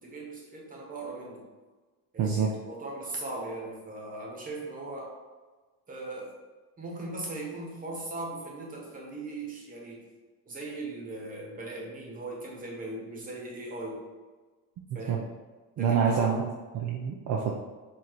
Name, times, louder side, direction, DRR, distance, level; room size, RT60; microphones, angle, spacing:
voice 1, 0.0-1.4 2.1-5.1 5.9-6.3 6.8-10.0 10.4-14.0 14.9-15.3 15.8-16.3, right 2 dB, 20° right, -2 dB, 1.2 m, -39 dB
voice 2, 2.2-2.5 14.9-15.2 15.8-17.5, right 6 dB, 50° right, -1 dB, 0.6 m, -27 dB
7.5 x 2.8 x 4.6 m, 1.3 s
cardioid pair, 175°, 37 cm